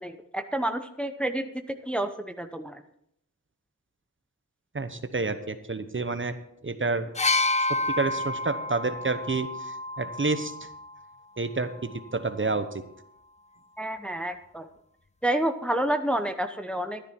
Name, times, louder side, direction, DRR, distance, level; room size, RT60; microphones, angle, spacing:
voice 1, 0.0-2.8 13.8-14.7 15.2-17.1, right 1 dB, 5° left, 7 dB, 0.8 m, -29 dB
voice 2, 4.7-6.4 6.6-7.1 7.6-10.5 11.4-12.8, right 3 dB, 35° right, 10 dB, 1.0 m, -29 dB
sound 1, 7.2-11.0 12.0-12.2, left 2 dB, 20° left, 0.4 m, -29 dB
12.5 x 10.5 x 4.5 m, 0.74 s
wide cardioid pair, 60°, 33 cm